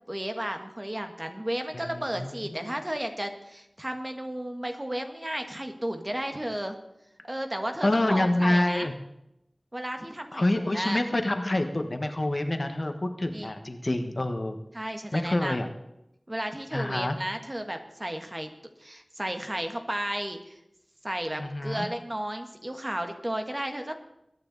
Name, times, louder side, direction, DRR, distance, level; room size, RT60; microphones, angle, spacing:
voice 1, 0.1-6.8 7.2-8.9 9.7-11.0 13.3-13.5 14.7-15.6 16.3-18.5 18.8-20.6 21.0-24.0, right 1 dB, 25° right, 6 dB, 1.5 m, -33 dB
voice 2, 1.7-2.7 7.8-8.9 10.3-14.6 15.1-15.7 16.7-17.2 21.4-21.9, left 1 dB, 50° left, 6 dB, 1.3 m, -27 dB
22.0 x 9.7 x 4.0 m, 0.84 s
wide cardioid pair, 55°, 0 cm